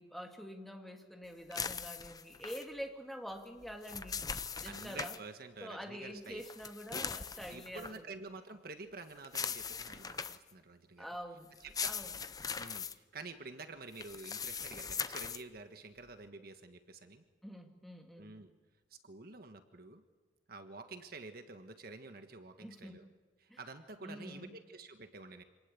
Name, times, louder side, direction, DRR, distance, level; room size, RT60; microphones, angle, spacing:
voice 1, 0.0-4.2 4.6-5.2 5.6-8.0 11.0-11.5 11.8-12.1 17.4-18.3 22.6-23.0 23.5-23.6 24.0-24.5, equal, ahead, 3 dB, 2.3 m, -46 dB
sound 1, 1.5-2.7 3.6-5.2 6.4-8.0 9.2-10.5 11.6-12.9 13.9-15.4, left 6 dB, 20° left, 0.6 m, -40 dB
voice 2, 4.6-6.4 6.9-7.0 7.5-11.1 11.6-11.9 12.6-17.2 18.2-18.5 18.9-20.0 20.5-23.1 23.4-25.4, right 3 dB, 55° right, 7 dB, 1.5 m, -49 dB
26.5 x 18.5 x 8.5 m, 1.3 s
head